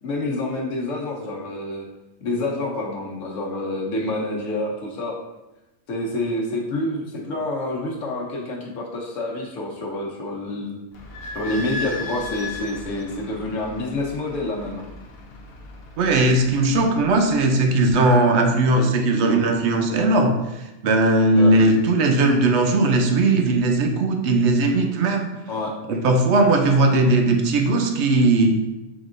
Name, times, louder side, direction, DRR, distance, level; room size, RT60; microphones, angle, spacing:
voice 1, 0.0-1.9 2.2-5.2 5.9-10.8 11.3-14.8 21.3-21.6 25.5-25.7, left 2 dB, 80° left, -1 dB, 1.1 m, -28 dB
Idling / Squeak, 10.9-17.3, left 2 dB, 60° left, 0.8 m, -37 dB
voice 2, 16.0-25.2 25.9-28.6, right 2 dB, 70° right, 4 dB, 0.9 m, -18 dB
5.0 x 3.6 x 2.5 m, 0.98 s
omnidirectional pair, 1.3 m